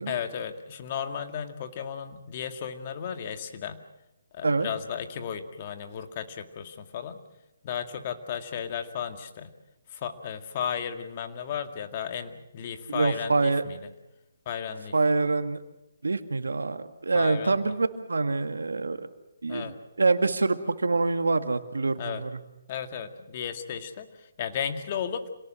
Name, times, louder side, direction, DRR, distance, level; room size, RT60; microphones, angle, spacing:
voice 1, 0.1-3.8 4.3-7.2 7.6-9.5 9.9-13.8 14.5-14.9 17.1-17.7 19.5-19.7 22.0-22.2 22.7-25.3, left 8 dB, 35° left, 8 dB, 2.1 m, -34 dB
voice 2, 12.9-13.6 14.9-15.6 16.0-19.1 19.4-22.3, right 3 dB, 85° right, 9 dB, 1.9 m, -26 dB
27.0 x 18.0 x 7.7 m, 0.93 s
hypercardioid pair, 155°, 0 cm